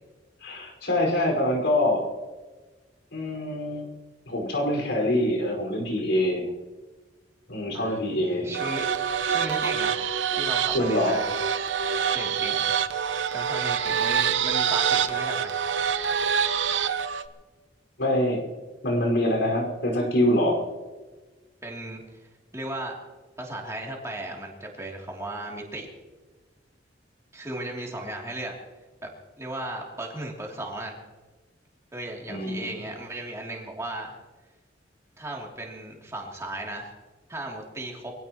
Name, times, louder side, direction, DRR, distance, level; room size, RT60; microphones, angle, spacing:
voice 1, 0.4-2.1 3.1-3.9 4.3-6.5 7.5-8.6 10.7-11.2 11.9-12.3 18.0-18.4 18.8-20.6 32.3-32.7, left 1 dB, 80° left, 1 dB, 5.2 m, -25 dB
voice 2, 7.7-11.3 12.1-12.6 13.0-13.1 13.3-15.5 21.6-23.0 23.4-25.9 27.3-28.5 29.0-29.1 29.4-31.0 31.9-34.1 35.2-36.9 37.3-38.1, right 1 dB, 15° right, -1 dB, 2.9 m, -36 dB
sound 1, 8.5-17.3, right 7 dB, 85° right, 0.8 m, -26 dB
24.0 x 16.5 x 3.1 m, 1.3 s
head